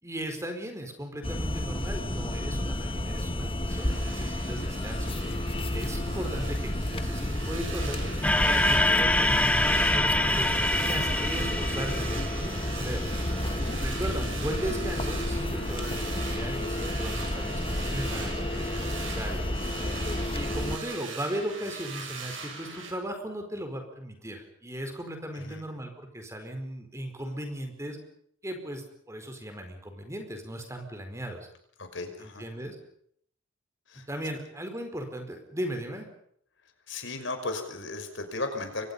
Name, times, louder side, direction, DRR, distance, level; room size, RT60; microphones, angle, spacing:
voice 1, 0.0-5.1 5.7-8.0 8.4-13.0 13.8-19.4 20.3-28.0 28.4-31.5 32.2-32.8 34.1-36.1, right 1 dB, 15° right, 5 dB, 4.6 m, -37 dB
sound 1, 1.2-20.8, left 1 dB, 30° left, 1.5 m, -31 dB
sound 2, 3.7-22.9, right 4 dB, 75° right, 7.1 m, -41 dB
sound 3, 8.2-12.7, left 1 dB, 5° left, 1.3 m, -25 dB
voice 2, 13.4-13.9 25.3-25.7 31.8-32.5 33.9-34.1 36.9-38.9, left 2 dB, 65° left, 6 dB, 5.6 m, -36 dB
29.0 x 24.0 x 5.6 m, 0.66 s
head